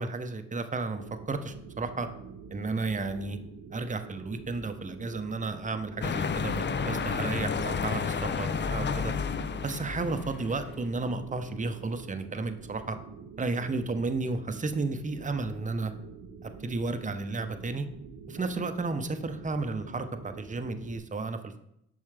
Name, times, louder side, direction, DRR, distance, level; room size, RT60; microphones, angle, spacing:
voice 1, 0.0-2.1 2.5-3.4 3.7-9.1 9.6-13.0 13.4-15.9 16.4-17.9 18.3-21.6, right 3 dB, 25° right, 8 dB, 0.8 m, -33 dB
sound 1, 1.0-21.0, right 5 dB, 80° right, 0.7 m, -47 dB
sound 2, 6.0-11.0, left 5 dB, 35° left, 0.5 m, -31 dB
7.2 x 5.4 x 3.4 m, 0.78 s
hypercardioid pair, 40°, 33 cm